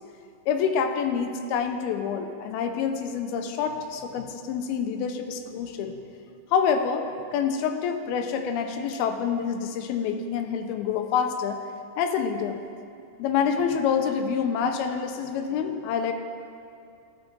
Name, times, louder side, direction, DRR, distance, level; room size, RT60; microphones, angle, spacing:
voice 1, 0.5-6.0 6.5-11.6 12.0-12.6 13.2-16.1, left 7 dB, 85° left, 6 dB, 2.5 m, -27 dB
14.5 x 6.1 x 3.2 m, 2.5 s
omnidirectional pair, 4.4 m